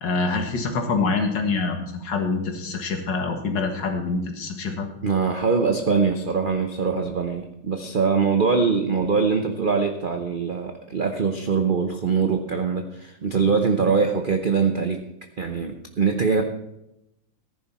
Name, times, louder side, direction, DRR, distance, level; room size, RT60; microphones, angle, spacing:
voice 1, 0.0-4.9, left 4 dB, 65° left, 4 dB, 2.2 m, -25 dB
voice 2, 5.0-15.0 15.4-16.4, right 5 dB, 50° right, 5 dB, 0.6 m, -23 dB
14.5 x 10.5 x 4.3 m, 0.83 s
omnidirectional pair, 2.1 m